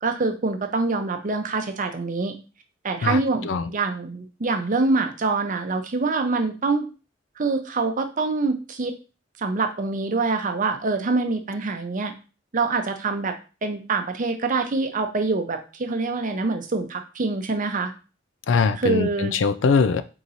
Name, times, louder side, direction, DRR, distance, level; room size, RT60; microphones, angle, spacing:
voice 1, 0.0-2.3 2.8-6.8 7.4-9.0 9.4-12.1 12.5-13.3 13.6-17.9 18.8-19.3, right 3 dB, 45° right, 0.7 m, -25 dB
voice 2, 3.0-3.7 18.5-20.0, left 5 dB, 70° left, 0.4 m, -22 dB
3.8 x 3.0 x 4.0 m
head